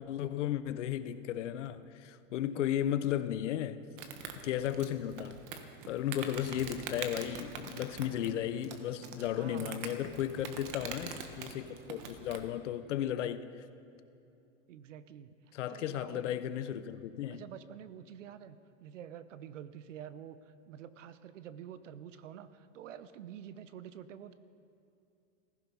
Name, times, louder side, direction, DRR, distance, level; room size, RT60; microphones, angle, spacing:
voice 1, 0.0-3.8 4.4-5.4 5.9-13.7 15.5-17.4, left 11 dB, 70° left, 12 dB, 1.0 m, -35 dB
voice 2, 2.4-2.9 9.3-10.2 14.7-15.3 15.7-16.4 17.3-24.3, right 9 dB, 80° right, 14 dB, 1.0 m, -48 dB
Insect, 4.0-12.5, right 6 dB, 45° right, 1.5 m, -45 dB
16.0 x 15.0 x 5.5 m, 2.7 s
hypercardioid pair, 135°, 37 cm